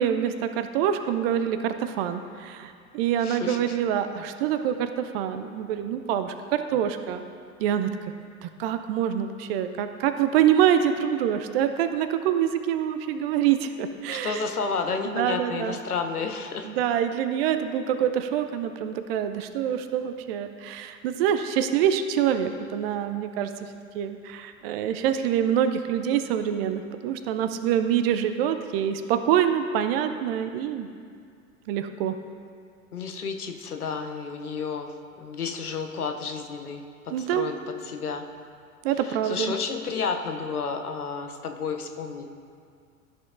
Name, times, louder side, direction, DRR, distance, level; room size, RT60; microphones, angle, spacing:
voice 1, 0.0-7.2 7.6-7.9 8.4-14.5 15.1-15.7 16.6-23.7 23.9-30.9 31.7-32.2 37.1-37.5 38.8-39.5, right 9 dB, 45° right, 9 dB, 0.5 m, -25 dB
voice 2, 3.2-3.8 14.1-16.7 32.9-34.9 35.2-36.8 37.2-38.2 39.0-42.3, left 5 dB, 85° left, 5 dB, 0.7 m, -31 dB
13.5 x 5.8 x 2.5 m, 2.2 s
figure-of-eight pair, 85°, 43 cm